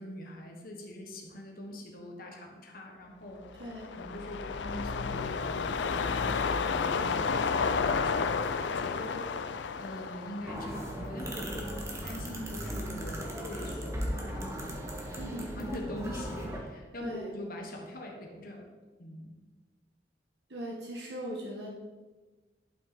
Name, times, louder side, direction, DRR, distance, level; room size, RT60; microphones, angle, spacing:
voice 1, 0.0-3.4 3.9-11.7 12.0-14.7 15.5-18.7 19.0-19.4, left 1 dB, 50° left, 1 dB, 1.3 m, -43 dB
sound 1, 3.5-11.9 12.3-12.4, left 5 dB, 75° left, 0.5 m, -31 dB
voice 2, 3.6-3.9 15.1-15.5 17.0-17.3 20.5-21.7, equal, 65° right, -3 dB, 1.4 m, -39 dB
sound 2, 10.5-16.6, equal, 15° right, 1.4 m, -37 dB
11.5 x 6.0 x 4.3 m, 1.3 s
head